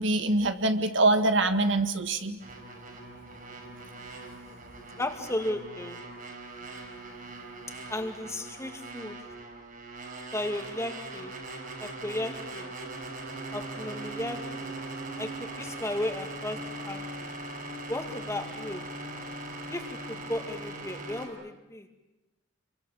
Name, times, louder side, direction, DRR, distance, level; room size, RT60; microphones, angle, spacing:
voice 1, 0.0-2.4, right 2 dB, 70° right, 8 dB, 1.7 m, -24 dB
sound 1, 2.4-21.3, right 2 dB, 50° right, 6.3 m, -40 dB
voice 2, 5.0-6.0 7.9-9.2 10.3-11.3 11.8-12.7 13.5-14.8 15.2-17.3 17.9-18.9 19.7-21.9, left 1 dB, 15° left, 6 dB, 2.3 m, -35 dB
29.0 x 24.0 x 7.2 m, 1.0 s
head